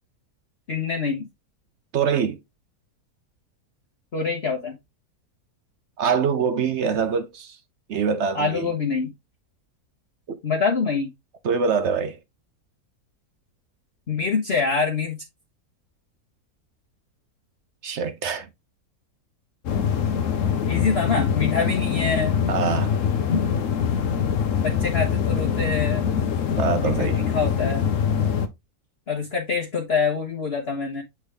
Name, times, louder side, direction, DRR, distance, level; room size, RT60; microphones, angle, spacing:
voice 1, 0.7-1.2 4.1-4.7 8.3-9.1 10.4-11.1 14.1-15.2 20.7-22.3 23.3-23.4 24.6-26.0 26.8-27.9 29.1-31.0, left 5 dB, 45° left, 1.2 m, -25 dB
voice 2, 1.9-2.4 6.0-7.6 7.9-8.7 10.3-10.4 11.4-12.2 17.8-18.5 22.5-23.0 26.6-27.2, right 6 dB, 60° right, 0.8 m, -24 dB
sound 1, 19.7-28.5, left 7 dB, 60° left, 1.0 m, -24 dB
8.0 x 3.6 x 3.3 m
omnidirectional pair, 1.6 m